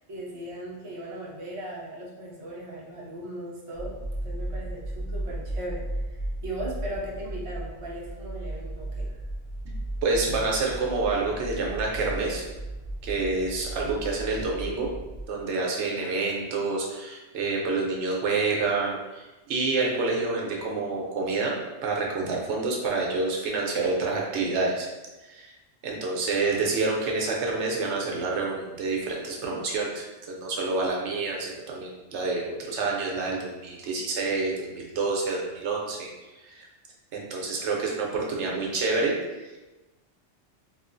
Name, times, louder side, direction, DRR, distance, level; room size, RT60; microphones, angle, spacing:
voice 1, 0.0-4.0 4.2-9.1, right 1 dB, 40° right, -4 dB, 0.5 m, -38 dB
sound 1, 3.7-15.2, right 1 dB, 80° left, 1.1 m, -35 dB
voice 2, 10.0-12.4 13.0-14.9 15.3-24.9 25.3-25.5 25.8-36.1 36.4-36.7 37.1-39.1 39.4-39.5, right 3 dB, 70° right, -2 dB, 0.9 m, -28 dB
3.0 x 2.3 x 2.5 m, 1.1 s
omnidirectional pair, 1.3 m